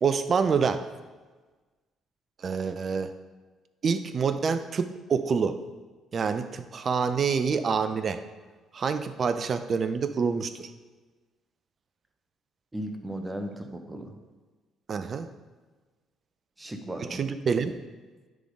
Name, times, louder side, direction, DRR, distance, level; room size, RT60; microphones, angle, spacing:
voice 1, 0.0-0.9 2.4-3.1 3.8-5.6 6.1-8.2 8.7-10.7 14.9-15.3 17.0-17.8, right 5 dB, 50° right, 11 dB, 0.5 m, -27 dB
voice 2, 12.7-14.1 16.6-17.2, right 1 dB, 20° right, 5 dB, 1.0 m, -36 dB
10.0 x 3.8 x 3.8 m, 1.3 s
hypercardioid pair, 55°, 0 cm